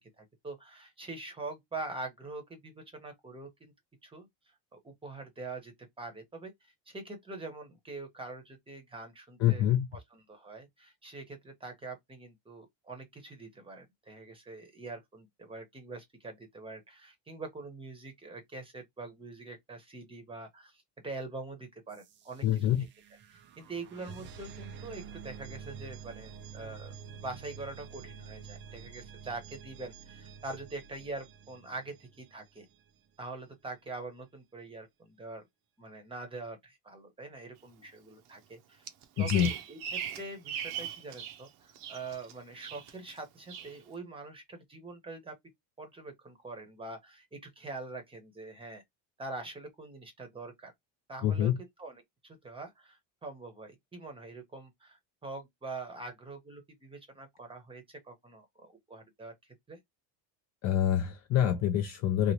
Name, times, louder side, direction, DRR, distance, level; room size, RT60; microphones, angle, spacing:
voice 1, 0.2-3.7 4.0-4.3 4.8-6.5 6.9-22.9 23.3-26.9 27.2-32.7 33.2-35.4 35.8-38.8 39.2-45.3 45.8-48.8 49.2-50.7 51.1-51.5 51.8-59.3 59.7-59.8, right 3 dB, 10° right, 0.9 m, -44 dB
voice 2, 9.4-9.9 22.4-22.8 39.2-39.5 51.2-51.6 60.6-62.3, left 11 dB, 40° left, 0.5 m, -26 dB
sound 1, 21.9-32.7, right 6 dB, 30° right, 0.3 m, -48 dB
Bird vocalization bird call bird song, 38.9-41.4 41.7-42.3 42.6-43.1 43.5-43.7, right 8 dB, 60° right, 0.7 m, -39 dB
3.0 x 2.5 x 2.8 m
cardioid pair, 155°, 43 cm